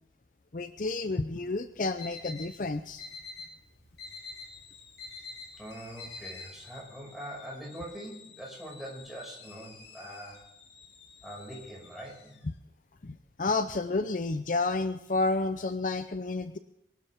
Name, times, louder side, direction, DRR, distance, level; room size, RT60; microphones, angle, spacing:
voice 1, 0.5-3.0 12.4-12.5 13.0-16.6, left 3 dB, 45° left, 10 dB, 0.6 m, -30 dB
Alarm, 1.7-6.8, left 3 dB, 65° left, 6.5 m, -45 dB
sound 1, 4.0-12.6, left 6 dB, 85° left, 2.3 m, -54 dB
voice 2, 5.6-10.4 11.2-12.4, right 1 dB, ahead, -4 dB, 5.8 m, -43 dB
22.5 x 12.5 x 3.6 m, 0.85 s
head